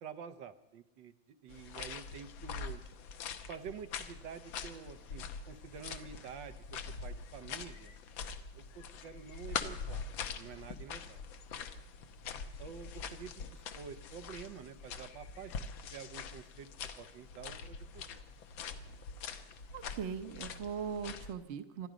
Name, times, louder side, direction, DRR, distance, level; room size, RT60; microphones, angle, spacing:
voice 1, 0.0-1.1 1.4-2.8 3.5-7.9 8.5-10.1 10.3-11.3 12.6-15.5 15.9-16.7 17.0-18.2, right 7 dB, 75° right, 10 dB, 1.5 m, -48 dB
sound 1, 1.5-21.3, left 6 dB, 90° left, 1.7 m, -44 dB
voice 2, 19.7-21.9, right 7 dB, 45° right, 8 dB, 1.0 m, -40 dB
25.5 x 11.0 x 5.1 m, 0.95 s
omnidirectional pair, 2.1 m